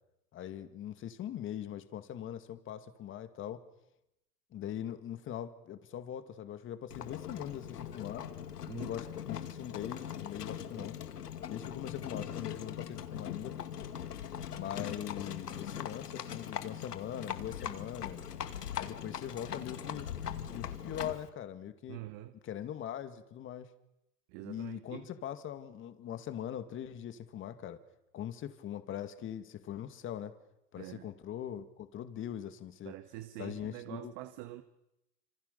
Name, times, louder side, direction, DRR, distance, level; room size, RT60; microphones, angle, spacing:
voice 1, 0.3-3.6 4.5-8.3 8.7-11.0 11.5-13.6 14.5-18.3 18.8-20.1 20.5-22.0 22.4-23.7 24.4-27.8 28.1-30.4 30.7-32.9 33.4-34.1, left 10 dB, 25° left, 10 dB, 2.2 m, -41 dB
Livestock farm animals working animals, 6.9-21.3, left 9 dB, 90° left, 2.4 m, -41 dB
voice 2, 8.7-9.0 21.9-22.3 24.3-25.1 30.8-31.1 32.8-34.6, right 16 dB, 40° right, 9 dB, 1.7 m, -45 dB
27.0 x 26.5 x 6.9 m, 0.87 s
hypercardioid pair, 125°, 46 cm